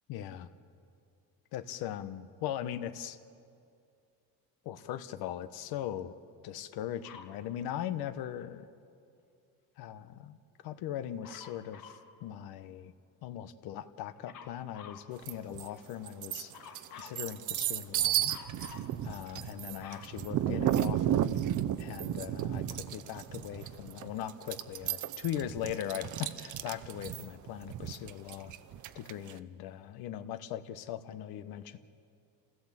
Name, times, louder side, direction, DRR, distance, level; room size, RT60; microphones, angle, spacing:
voice 1, 0.1-0.5 1.5-3.2 4.6-6.2 6.4-8.7 9.8-10.4 10.6-12.9 13.2-16.5 17.0-18.3 19.0-21.3 21.8-28.5 28.9-31.8, left 11 dB, 90° left, 11 dB, 1.1 m, -39 dB
Dog, 7.0-7.4 11.2-12.1 14.2-15.1 16.5-17.2 18.3-18.9 19.4-21.0 21.7-21.8, left 7 dB, 65° left, 1.8 m, -50 dB
sound 1, 15.3-15.7 16.1-29.3, right 11 dB, 55° right, 0.8 m, -33 dB
28.5 x 15.5 x 7.6 m, 2.4 s
cardioid pair, 150°, 36 cm